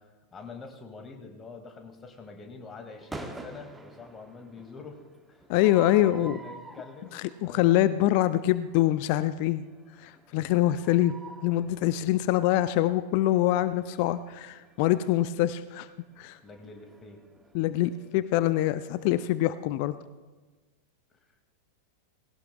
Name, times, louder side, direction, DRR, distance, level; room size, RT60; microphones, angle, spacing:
voice 1, 0.0-5.0 5.3-5.4 5.9-7.7 10.3-10.4 16.4-17.2, left 4 dB, 20° left, 4 dB, 2.1 m, -46 dB
sound 1, 2.9-19.7, right 2 dB, 10° right, 1.1 m, -50 dB
voice 2, 5.5-6.4 7.1-9.6 10.0-15.9 16.2-16.4 17.5-19.9, left 14 dB, 45° left, 15 dB, 0.4 m, -25 dB
19.0 x 17.5 x 2.3 m, 1.3 s
figure-of-eight pair, 90°, 0 cm